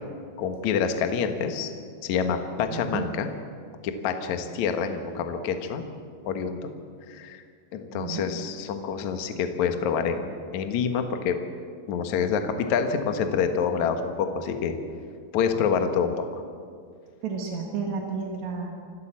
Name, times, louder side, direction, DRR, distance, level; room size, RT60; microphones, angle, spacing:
voice 1, 0.4-1.7 2.0-3.3 3.8-5.8 6.2-6.6 7.1-7.4 7.7-11.3 11.9-14.8 15.3-16.2, left 6 dB, 85° left, 6 dB, 1.6 m, -27 dB
voice 2, 2.7-3.1 7.9-8.3 17.2-18.7, right 5 dB, 60° right, 2 dB, 1.9 m, -32 dB
27.5 x 12.5 x 7.5 m, 2.2 s
omnidirectional pair, 5.6 m